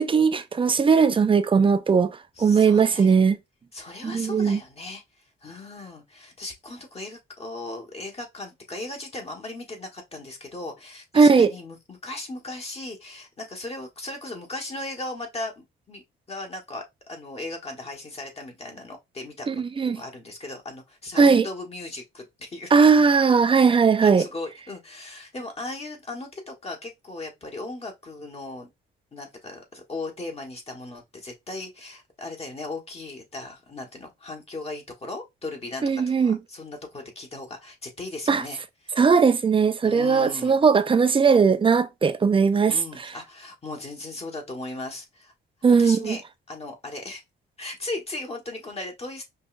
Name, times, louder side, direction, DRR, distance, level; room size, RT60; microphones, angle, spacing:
voice 1, 0.0-2.1 2.4-3.4 4.0-4.6 11.2-11.5 19.5-20.0 21.2-21.5 22.7-24.3 35.8-36.4 38.3-38.4 39.0-42.8 45.6-46.2, right 5 dB, 25° right, 0.5 m, -18 dB
voice 2, 2.4-3.2 3.7-5.0 5.4-16.0 16.3-19.5 19.9-22.9 24.0-28.7 29.1-38.6 39.8-40.6 42.7-45.3 45.8-46.2 46.5-47.2 47.6-49.3, left 2 dB, 30° left, 1.4 m, -37 dB
5.3 x 2.4 x 2.5 m
cardioid pair, 90°, 20 cm